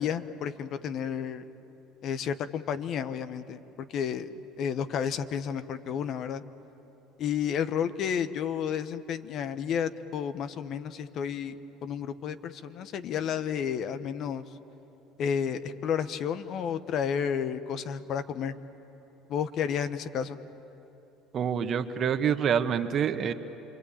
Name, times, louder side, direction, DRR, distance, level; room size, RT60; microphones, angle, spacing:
voice 1, 0.0-1.4 2.0-4.3 4.6-6.4 7.2-14.4 15.2-18.5 19.3-20.4, left 8 dB, 55° left, 11 dB, 1.3 m, -31 dB
voice 2, 21.3-23.3, right 8 dB, 45° right, 9 dB, 1.5 m, -26 dB
28.0 x 23.5 x 8.8 m, 3.0 s
hypercardioid pair, 80°, 0 cm